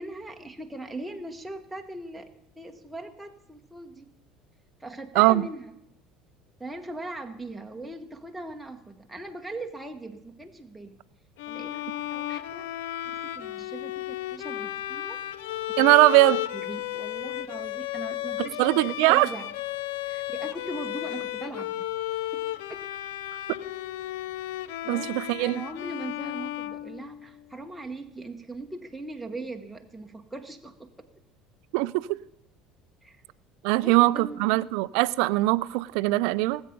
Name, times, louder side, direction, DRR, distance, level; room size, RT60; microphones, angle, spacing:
voice 1, 0.0-4.1 4.8-5.7 6.6-11.0 11.5-12.7 13.0-15.2 15.8-16.1 16.5-19.5 20.0-21.8 22.3-22.4 22.7-22.8 24.8-31.1 33.0-33.2 33.7-34.7, right 2 dB, 5° right, 1.2 m, -40 dB
Bowed string instrument, 11.4-27.4, left 14 dB, 80° left, 0.5 m, -34 dB
voice 2, 15.8-16.4 18.4-19.3 24.9-25.6 31.7-32.2 33.6-36.6, right 20 dB, 70° right, 0.4 m, -21 dB
18.5 x 7.9 x 5.2 m
hypercardioid pair, 80°, 0 cm